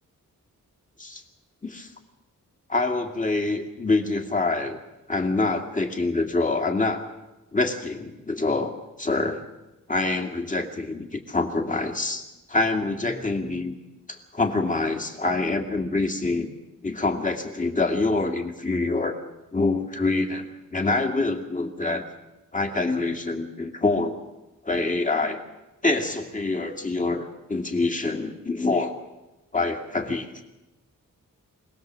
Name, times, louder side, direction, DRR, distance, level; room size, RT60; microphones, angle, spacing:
voice 1, 2.7-4.8 5.1-7.0 7.5-9.4 9.9-13.7 14.1-16.5 16.8-19.1 19.5-20.5 20.7-22.0 22.5-24.2 24.6-25.4 25.8-29.0 29.5-30.3, left 3 dB, 25° left, 4 dB, 2.4 m, -26 dB
25.5 x 19.0 x 7.7 m, 1.0 s
wide cardioid pair, 140°, 32 cm